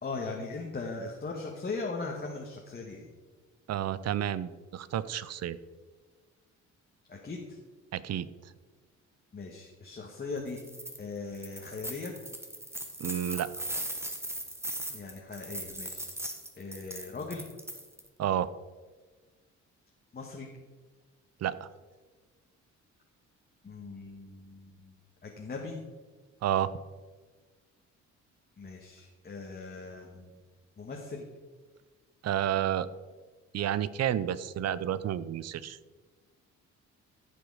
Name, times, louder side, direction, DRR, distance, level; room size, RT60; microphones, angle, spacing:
voice 1, 0.0-3.1 7.1-7.6 9.3-10.6 11.0-12.1 14.9-16.1 16.6-17.4 20.1-20.5 23.6-24.9 25.2-25.8 28.6-30.3 30.8-31.2, left 3 dB, 30° left, 0 dB, 1.5 m, -39 dB
voice 2, 3.7-5.6 7.9-8.3 13.0-13.5 18.2-18.5 21.4-21.7 26.4-26.7 32.2-32.9 33.5-35.8, right 10 dB, 55° right, 17 dB, 0.6 m, -30 dB
sound 1, 10.5-11.0 11.3-18.1, right 1 dB, 10° right, 1.4 m, -39 dB
14.5 x 5.1 x 4.8 m, 1.4 s
cardioid pair, 90°, 30 cm